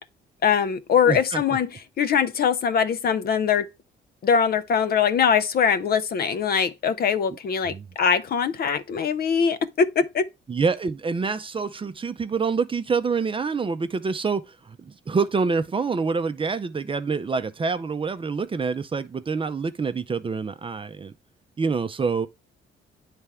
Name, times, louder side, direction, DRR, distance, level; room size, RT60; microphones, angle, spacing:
voice 1, 0.4-1.7 2.0-3.7 4.2-10.3, left 7 dB, 50° left, 0.5 m, -22 dB
voice 2, 1.1-1.4 7.6-7.9 10.5-21.1 21.6-22.3, right 5 dB, 25° right, 0.5 m, -26 dB
9.5 x 3.4 x 3.4 m
cardioid pair, 90°, 20 cm